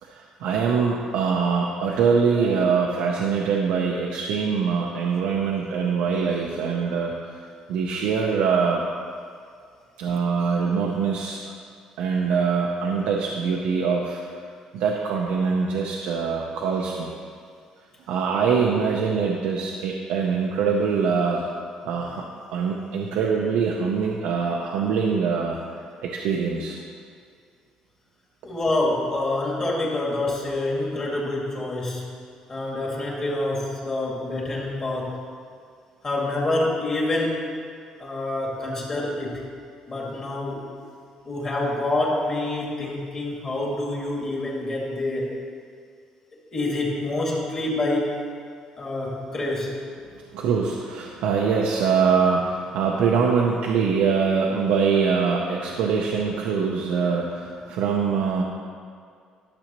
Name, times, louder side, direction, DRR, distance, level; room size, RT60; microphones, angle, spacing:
voice 1, 0.0-7.1 7.7-8.8 10.0-11.5 12.0-14.2 14.7-17.2 18.1-21.4 21.8-22.3 22.5-25.6 26.0-26.8 50.3-58.4, right 5 dB, 85° right, -1 dB, 0.7 m, -23 dB
voice 2, 28.4-32.1 32.5-35.2 36.0-37.5 38.0-39.5 39.9-40.7 41.3-45.4 46.5-48.2 48.8-49.8, left 2 dB, 30° left, -3 dB, 2.0 m, -27 dB
12.0 x 7.0 x 3.0 m, 2.2 s
cardioid pair, 125°, 2 cm